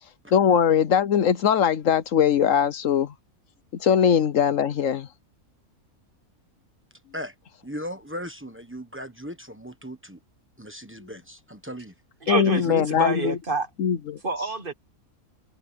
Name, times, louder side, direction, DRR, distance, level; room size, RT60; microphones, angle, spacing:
voice 1, 0.3-3.1 3.8-5.1 12.3-13.4 13.8-14.2, left 8 dB, 65° left, 1.1 m, -21 dB
voice 2, 7.6-10.2 10.6-11.9 12.6-12.7, equal, 10° right, 1.1 m, -37 dB
voice 3, 12.2-13.7 14.2-14.7, right 3 dB, 40° right, 1.4 m, -28 dB
omnidirectional pair, 1.5 m